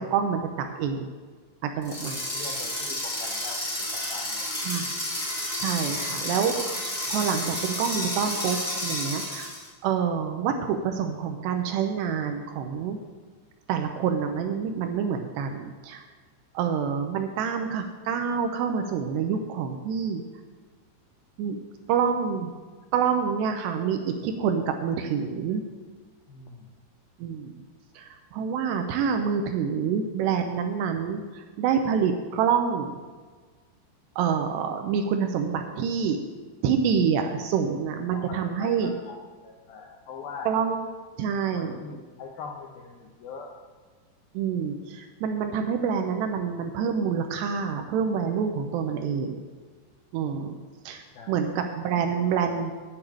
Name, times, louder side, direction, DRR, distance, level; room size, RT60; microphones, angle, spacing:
voice 1, 0.1-0.4 0.8-1.1 1.6-2.2 2.4-2.5 4.7-4.9 5.6-6.8 7.1-8.6 8.8-9.5 9.8-13.0 13.7-16.0 16.5-20.2 21.4-21.6 21.9-22.5 22.9-25.6 27.2-27.5 28.0-28.1 28.3-32.9 34.2-36.2 36.6-38.9 40.5-40.8 41.2-41.7 44.3-49.4 50.1-50.6 50.9-51.0 51.3-52.7, right 7 dB, 80° right, 6 dB, 2.6 m, -27 dB
sound 1, 1.8-9.7, left 1 dB, 10° left, 3.4 m, -31 dB
voice 2, 1.9-3.6 3.9-4.5 26.3-26.7 38.1-39.2 39.4-40.5 41.6-43.5 51.1-51.5, left 5 dB, 80° left, 0 dB, 2.2 m, -42 dB
9.4 x 6.9 x 8.6 m, 1.4 s
omnidirectional pair, 5.4 m